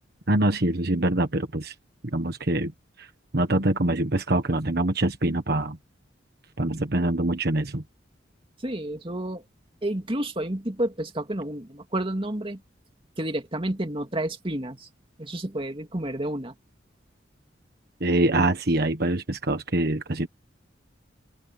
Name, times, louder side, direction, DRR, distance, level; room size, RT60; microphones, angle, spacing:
voice 1, 0.3-1.7 2.0-2.7 3.0-3.1 3.3-5.8 6.6-7.8 18.0-20.3, right 1 dB, 55° right, 1.4 m, -24 dB
voice 2, 8.6-9.4 9.8-12.6 13.2-14.9 15.2-16.5, right 1 dB, 30° right, 2.4 m, -30 dB
open air
head